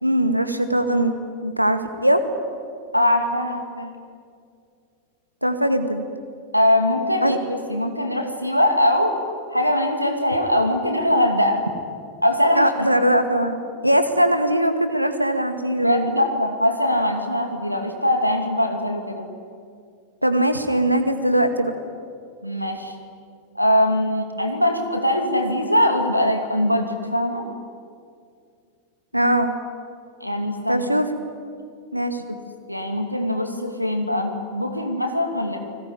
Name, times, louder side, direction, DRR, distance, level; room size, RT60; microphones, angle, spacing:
voice 1, 0.0-2.2 5.4-6.0 7.2-7.4 12.6-13.6 13.8-16.1 20.2-21.7 29.1-29.5 30.7-31.1 31.9-32.2, right 1 dB, 90° right, 9 dB, 2.0 m, -20 dB
voice 2, 2.9-3.9 6.5-9.2 9.5-11.6 12.2-12.9 15.8-19.3 22.4-23.0 23.5-27.4 30.2-30.9 32.7-35.6, left 1 dB, 90° left, 4 dB, 2.7 m, -22 dB
30.0 x 20.0 x 9.9 m, 2.3 s
figure-of-eight pair, 90°, 0 cm